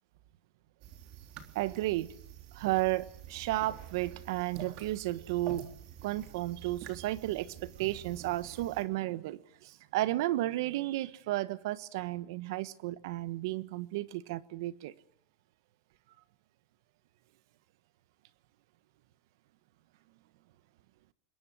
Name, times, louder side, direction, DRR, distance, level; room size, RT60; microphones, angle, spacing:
sound 1, 0.8-8.8, right 8 dB, 50° right, 3.6 m, -48 dB
voice 1, 1.5-2.1 2.5-5.7 6.0-14.9, right 17 dB, 75° right, 16 dB, 1.3 m, -33 dB
27.0 x 21.5 x 6.4 m, 0.66 s
supercardioid pair, 140°, 2 cm